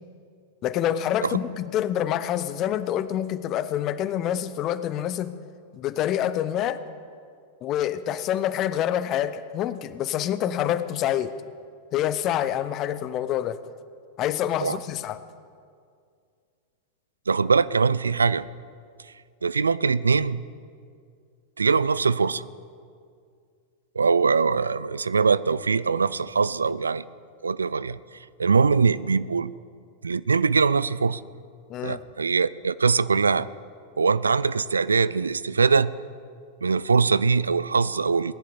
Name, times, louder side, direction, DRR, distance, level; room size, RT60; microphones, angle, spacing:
voice 1, 0.6-5.3 5.7-6.8 7.6-11.3 11.9-13.6 14.2-15.2 31.7-32.0, left 11 dB, 35° left, 14 dB, 0.7 m, -27 dB
voice 2, 17.3-18.5 19.4-20.4 21.6-22.4 24.0-27.0 27.4-28.0 28.4-29.5 30.0-31.2 31.8-33.5 34.0-35.9 36.6-38.3, right 5 dB, 75° right, 18 dB, 0.4 m, -22 dB
19.5 x 10.5 x 6.8 m, 2.2 s
figure-of-eight pair, 90°, 0 cm